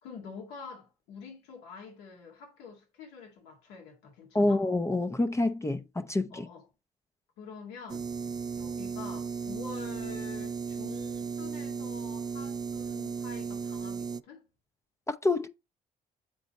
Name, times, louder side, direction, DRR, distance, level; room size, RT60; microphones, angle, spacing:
voice 1, 0.0-4.6 6.3-6.7 7.4-8.1 8.6-14.4, left 5 dB, 85° left, 2.0 m, -46 dB
voice 2, 4.3-6.5 15.1-15.5, left 2 dB, 15° left, 0.6 m, -27 dB
sound 1, 7.9-14.2, right 5 dB, 25° right, 0.4 m, -35 dB
7.6 x 4.2 x 4.1 m
supercardioid pair, 65°, 17 cm